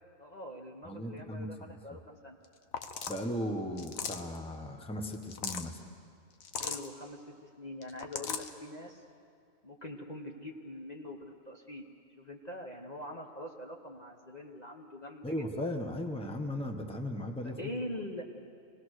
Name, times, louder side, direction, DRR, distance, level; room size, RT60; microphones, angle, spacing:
voice 1, 0.2-2.4 6.6-9.0 9.6-11.8 12.2-15.4 17.4-18.2, left 1 dB, 30° left, 0 dB, 1.2 m, -43 dB
voice 2, 0.8-1.8 3.1-5.8 15.2-17.6, left 1 dB, 5° left, 4 dB, 1.2 m, -37 dB
sound 1, 2.4-2.5 2.7-3.2 3.8-4.4 5.1-5.7 6.4-6.9 7.8-8.5, left 6 dB, 75° left, 1.4 m, -37 dB
26.5 x 18.5 x 6.5 m, 2.3 s
omnidirectional pair, 1.4 m